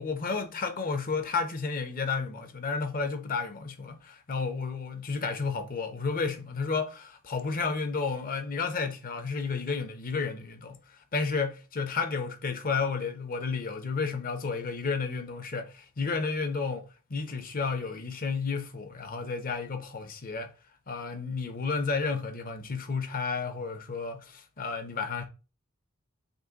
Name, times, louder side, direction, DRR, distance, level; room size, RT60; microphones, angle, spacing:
voice 1, 0.0-10.8 11.1-16.8 17.1-20.5 20.9-25.3, left 4 dB, 40° left, 0.7 m, -32 dB
5.3 x 2.1 x 3.9 m
head